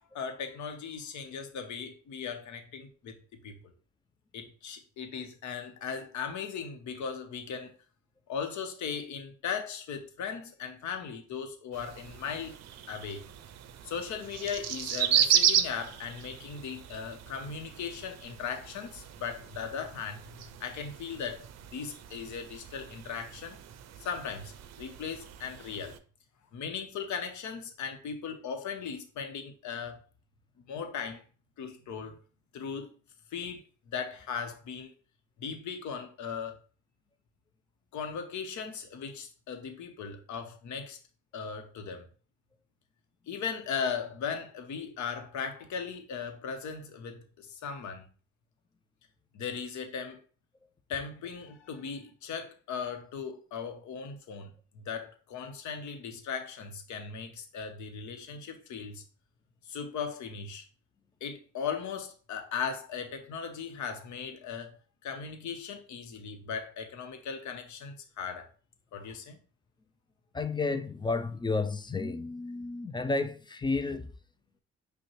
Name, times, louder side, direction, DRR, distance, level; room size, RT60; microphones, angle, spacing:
voice 1, 0.1-3.2 3.4-3.5 4.3-7.7 8.3-12.5 12.9-13.2 13.8-20.2 20.6-21.4 21.7-23.6 24.0-24.5 24.8-26.0 26.5-30.0 30.7-31.2 31.6-32.2 32.5-32.9 33.3-34.9 35.4-36.6 37.9-41.0 41.3-42.1 43.3-48.0 49.3-50.2 50.9-59.0 59.6-60.7 61.2-64.8 65.0-68.5 68.9-69.4, left 6 dB, 70° left, 0.9 m, -38 dB
sound 1, 11.7-26.0, right 9 dB, 60° right, 0.5 m, -34 dB
voice 2, 70.3-74.1, left 3 dB, 15° left, 0.3 m, -31 dB
5.4 x 2.2 x 3.1 m
cardioid pair, 90°, 30 cm